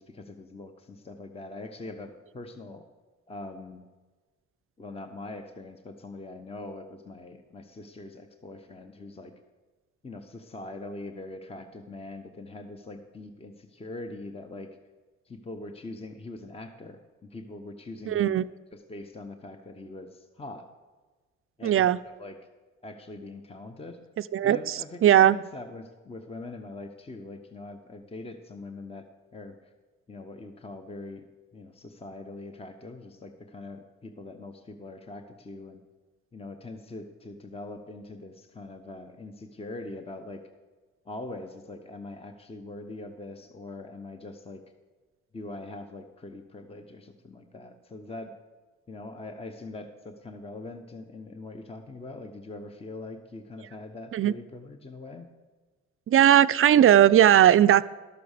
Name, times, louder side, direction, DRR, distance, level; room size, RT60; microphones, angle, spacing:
voice 1, 0.0-2.8 3.3-3.8 4.8-9.3 10.0-14.7 15.2-18.4 18.7-20.7 21.6-22.4 22.8-24.0 24.4-29.7 30.1-31.2 31.5-35.8 36.3-40.4 41.0-44.6 45.3-48.3 48.9-55.3, left 2 dB, 20° left, 7 dB, 0.9 m, -42 dB
voice 2, 18.1-18.4 21.6-22.0 24.3-25.4 54.1-54.3 56.1-57.8, right 11 dB, 45° right, 14 dB, 0.5 m, -18 dB
12.5 x 6.8 x 6.6 m, 1.3 s
cardioid pair, 90°, 30 cm